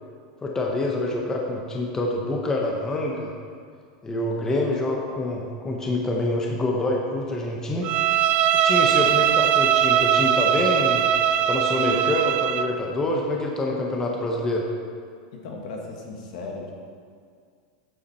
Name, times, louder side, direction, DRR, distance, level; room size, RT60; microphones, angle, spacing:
voice 1, 0.4-3.3 4.0-7.9 8.6-11.0 11.5-14.7, left 2 dB, 15° left, -1 dB, 0.8 m, -26 dB
Bowed string instrument, 7.8-12.7, right 10 dB, 35° right, 0.3 m, -20 dB
voice 2, 8.8-9.2 15.3-16.7, left 3 dB, 70° left, 0 dB, 1.7 m, -37 dB
8.4 x 7.2 x 4.2 m, 2.2 s
supercardioid pair, 145°, 4 cm